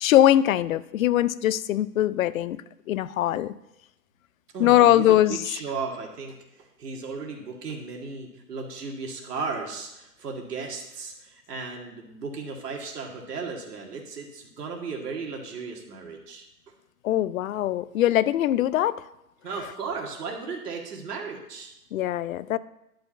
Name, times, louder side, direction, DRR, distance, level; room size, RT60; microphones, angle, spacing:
voice 1, 0.0-2.6 2.9-3.5 4.6-5.5 17.0-19.0 21.9-22.6, left 13 dB, 60° left, 17 dB, 0.6 m, -21 dB
voice 2, 4.5-16.5 19.4-21.7, right 4 dB, 80° right, 1 dB, 2.2 m, -35 dB
11.5 x 5.3 x 7.0 m, 0.89 s
hypercardioid pair, 135°, 47 cm